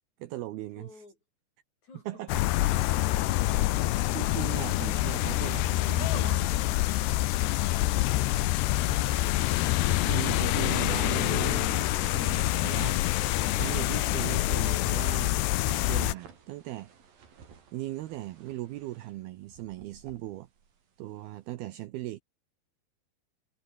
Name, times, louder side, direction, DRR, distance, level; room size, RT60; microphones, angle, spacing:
voice 1, 0.2-0.9 2.1-2.4 4.1-6.5 10.1-16.9 17.7-20.5 21.0-22.2, right 16 dB, 85° right, 2.2 m, -38 dB
voice 2, 0.8-1.2 1.8-2.3, left 3 dB, 35° left, 9.1 m, -53 dB
sound 1, 2.3-16.1, left 16 dB, 75° left, 2.7 m, -26 dB
sound 2, 8.1-21.5, right 6 dB, 50° right, 5.3 m, -56 dB
omnidirectional pair, 5.8 m